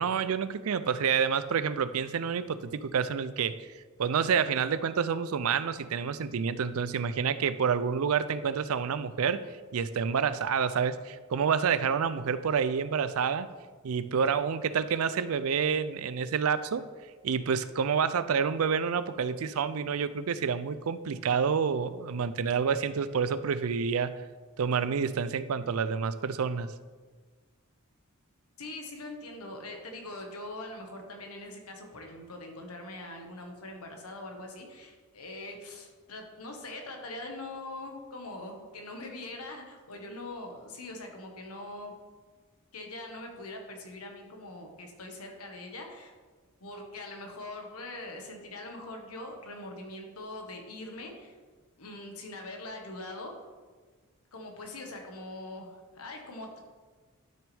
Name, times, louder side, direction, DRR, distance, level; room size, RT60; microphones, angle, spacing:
voice 1, 0.0-3.6 4.0-9.4 9.7-13.5 13.8-16.9 17.2-24.1 24.6-26.7, right 6 dB, 70° right, 14 dB, 0.4 m, -28 dB
voice 2, 28.6-41.9 42.7-46.1 46.6-51.3 51.8-53.5 54.3-56.6, left 2 dB, 90° left, 2 dB, 1.5 m, -42 dB
12.0 x 6.1 x 3.5 m, 1.4 s
head